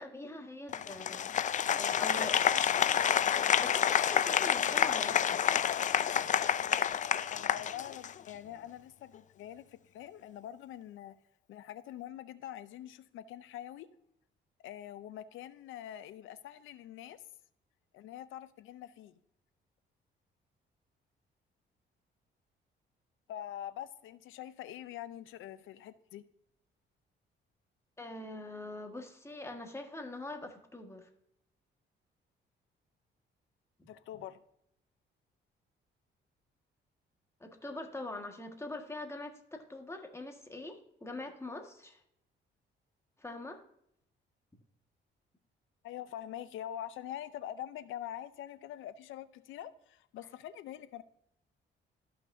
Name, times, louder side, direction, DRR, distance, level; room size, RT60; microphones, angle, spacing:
voice 1, 0.0-2.4 3.6-5.4 28.0-31.1 33.8-33.9 37.4-42.0 43.2-43.6, left 2 dB, 15° left, 4 dB, 1.6 m, -43 dB
Applause, 0.7-8.3, left 9 dB, 40° left, 0.4 m, -29 dB
voice 2, 7.3-11.2 11.5-13.9 14.6-17.2 17.9-19.1 23.3-26.2 33.9-34.4 45.8-51.0, left 11 dB, 85° left, 14 dB, 0.6 m, -44 dB
13.5 x 5.9 x 2.6 m, 0.75 s
cardioid pair, 90°, 20 cm